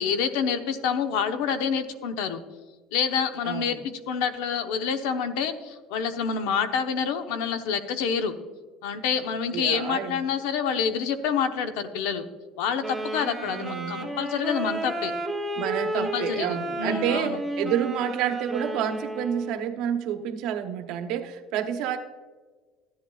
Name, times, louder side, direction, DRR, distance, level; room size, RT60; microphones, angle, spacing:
voice 1, 0.0-2.4 2.9-8.3 8.8-12.3 12.6-15.1 15.9-17.4, left 6 dB, 90° left, 8 dB, 0.9 m, -27 dB
voice 2, 3.4-3.8 9.5-10.2 13.4-14.0 15.6-22.0, right 9 dB, 55° right, 6 dB, 0.9 m, -29 dB
Wind instrument woodwind instrument, 12.8-19.7, right 1 dB, 5° right, 1.0 m, -32 dB
13.5 x 10.5 x 2.4 m, 1.4 s
cardioid pair, 180°, 0 cm